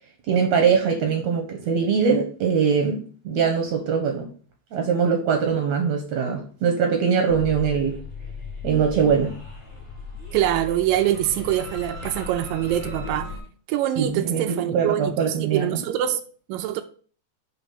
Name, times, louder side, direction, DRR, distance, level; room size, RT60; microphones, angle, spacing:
voice 1, 0.3-4.3 4.7-8.0 8.6-9.4 14.0-15.8, right 6 dB, 70° right, 1.8 m, -22 dB
sound 1, 7.3-13.4, left 4 dB, 15° left, 1.2 m, -36 dB
voice 2, 10.3-13.3 13.7-16.2 16.5-16.8, right 12 dB, 90° right, 2.2 m, -24 dB
6.1 x 3.4 x 5.8 m
omnidirectional pair, 3.9 m